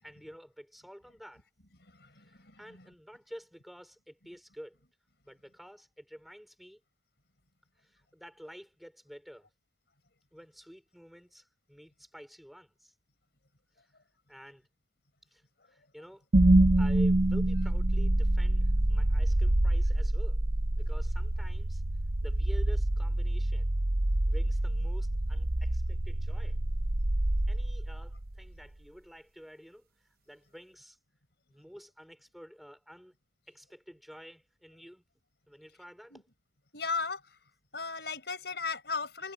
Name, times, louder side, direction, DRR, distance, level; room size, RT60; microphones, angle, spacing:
voice 1, 0.0-1.4 2.1-4.8 5.2-6.8 7.8-9.5 10.3-12.9 14.3-14.7 15.3-16.2 16.8-20.4 20.8-21.8 22.2-23.7 24.3-26.6 27.5-29.9 30.3-31.0 31.5-33.1 33.5-35.0 35.5-36.3, equal, ahead, 4.8 m, -50 dB
voice 2, 1.9-2.9 36.1-36.2 36.7-37.2 37.7-39.3, left 4 dB, 65° left, 5.8 m, -36 dB
sound 1, 16.3-28.4, right 1 dB, 55° right, 1.1 m, -26 dB
head